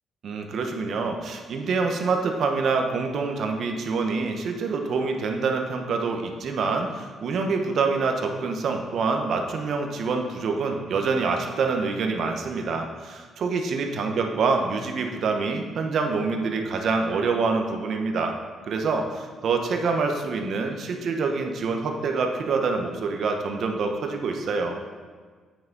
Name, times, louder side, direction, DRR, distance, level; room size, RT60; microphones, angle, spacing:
voice 1, 0.2-18.3 18.7-24.8, right 4 dB, 65° right, 3 dB, 1.0 m, -26 dB
8.6 x 5.6 x 3.9 m, 1.5 s
cardioid pair, 90°, 0 cm